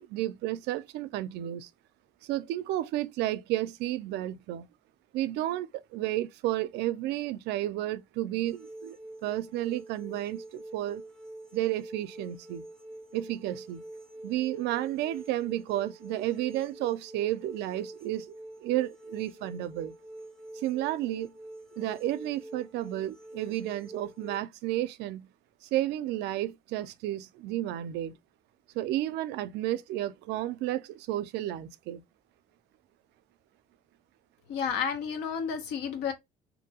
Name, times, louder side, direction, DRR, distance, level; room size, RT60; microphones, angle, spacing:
voice 1, 0.0-1.7 2.2-4.7 5.1-11.0 11.5-12.6 13.1-13.8 14.2-18.3 18.6-19.9 20.5-21.3 21.8-25.3 25.6-28.2 28.7-32.0, right 14 dB, 80° right, 0.4 m, -32 dB
sound 1, 8.5-24.4, right 1 dB, 5° left, 0.6 m, -46 dB
voice 2, 34.5-36.1, left 7 dB, 90° left, 0.8 m, -31 dB
2.7 x 2.6 x 2.7 m
cardioid pair, 110°, 17 cm